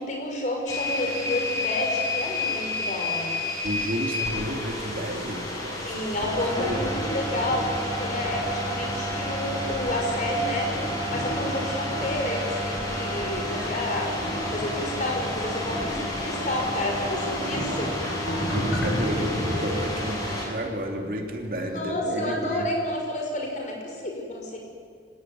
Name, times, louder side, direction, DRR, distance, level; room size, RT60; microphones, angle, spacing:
voice 1, 0.0-3.3 5.8-10.7 11.1-17.9 21.5-24.6, left 1 dB, 45° left, 0 dB, 5.6 m, -30 dB
sound 1, 0.7-20.5, left 1 dB, 20° left, 5.9 m, -30 dB
voice 2, 3.6-5.9 6.2-6.8 18.0-22.6, equal, 50° right, 2 dB, 3.0 m, -32 dB
sound 2, 5.8-21.9, equal, 80° left, 5.7 m, -36 dB
27.0 x 17.0 x 9.5 m, 2.3 s
head